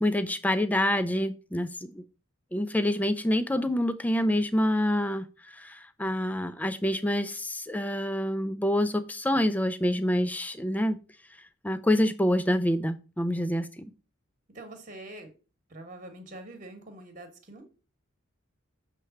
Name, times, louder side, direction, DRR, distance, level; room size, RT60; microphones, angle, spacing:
voice 1, 0.0-2.0 2.5-5.3 5.5-11.0 11.6-13.7, left 1 dB, 5° left, 11 dB, 0.4 m, -27 dB
voice 2, 14.5-15.3 15.7-17.6, right 1 dB, 35° right, 6 dB, 1.2 m, -45 dB
6.8 x 3.2 x 5.7 m, 0.34 s
head